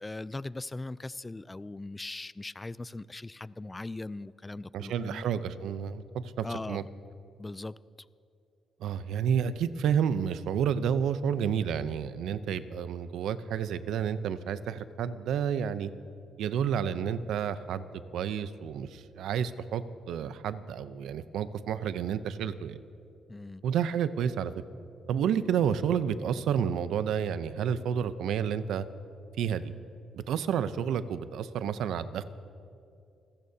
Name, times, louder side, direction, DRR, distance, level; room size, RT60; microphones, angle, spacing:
voice 1, 0.0-5.3 6.4-6.9 7.4-7.8 23.3-23.6, left 2 dB, 20° left, 19 dB, 0.3 m, -39 dB
voice 2, 4.7-6.8 8.8-15.9 16.4-17.9 18.1-22.8 23.6-24.5 25.1-28.9 29.4-29.7 30.1-32.2, right 8 dB, 80° right, 13 dB, 0.6 m, -30 dB
26.5 x 15.5 x 2.8 m, 2.5 s
cardioid pair, 90°, 0 cm